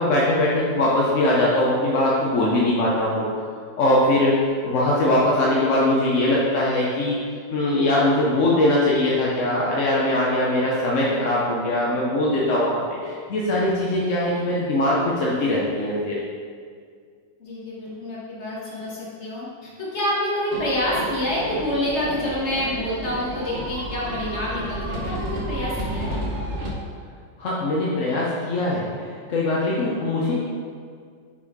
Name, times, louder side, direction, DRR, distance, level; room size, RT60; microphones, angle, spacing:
voice 1, 0.0-3.3 3.8-7.2 7.5-16.2 27.4-30.5, left 1 dB, 55° left, -5 dB, 0.9 m, -21 dB
voice 2, 17.4-26.1, left 1 dB, 40° left, -7 dB, 1.8 m, -27 dB
sound 1, 20.5-26.7, right 1 dB, 50° right, 1.0 m, -31 dB
6.1 x 4.1 x 4.6 m, 2.1 s
omnidirectional pair, 2.0 m